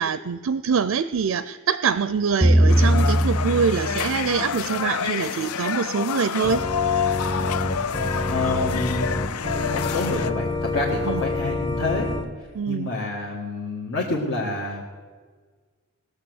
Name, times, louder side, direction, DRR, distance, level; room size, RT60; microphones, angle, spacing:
voice 1, 0.0-6.6 11.1-11.2 12.5-12.9, right 6 dB, 70° right, 13 dB, 0.4 m, -24 dB
sound 1, 2.4-4.6, right 1 dB, ahead, 0.3 m, -20 dB
sound 2, 2.7-10.3, left 7 dB, 80° left, 0.4 m, -28 dB
Organ, 6.4-12.2, left 2 dB, 25° left, 1.0 m, -27 dB
voice 2, 8.2-9.1 9.5-12.1 12.7-14.8, left 2 dB, 65° left, -4 dB, 1.7 m, -28 dB
18.5 x 6.7 x 7.9 m, 1.5 s
head